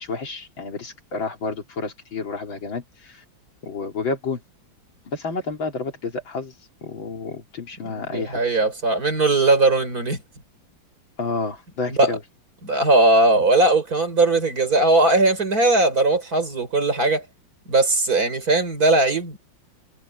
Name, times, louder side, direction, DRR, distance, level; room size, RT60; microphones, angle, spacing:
voice 1, 0.0-3.2 3.6-4.4 5.1-6.5 6.8-8.4 11.2-12.2, left 4 dB, 80° left, 3.9 m, -30 dB
voice 2, 7.8-10.2 11.9-12.2 12.6-17.2 17.7-19.4, right 2 dB, 45° right, 4.9 m, -19 dB
omnidirectional pair, 2.1 m